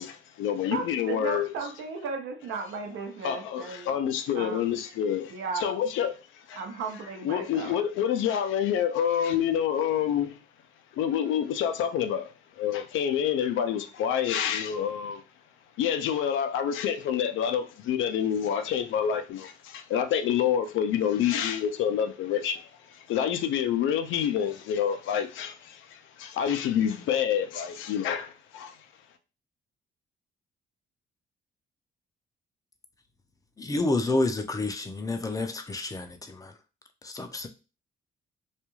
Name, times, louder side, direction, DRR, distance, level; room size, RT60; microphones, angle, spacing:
voice 1, 0.0-1.5 3.2-5.3 5.6-6.1 6.5-6.6 7.2-10.4 10.9-12.3 12.6-15.2 15.8-22.6 22.9-28.8, left 9 dB, 80° left, 0.4 m, -27 dB
voice 2, 0.7-4.0 4.3-4.8 5.3-5.8 6.5-7.8, right 5 dB, 85° right, 0.7 m, -35 dB
voice 3, 33.6-36.5 37.0-37.5, left 2 dB, 20° left, 0.4 m, -29 dB
2.4 x 2.2 x 3.0 m
cardioid pair, 90°, 20 cm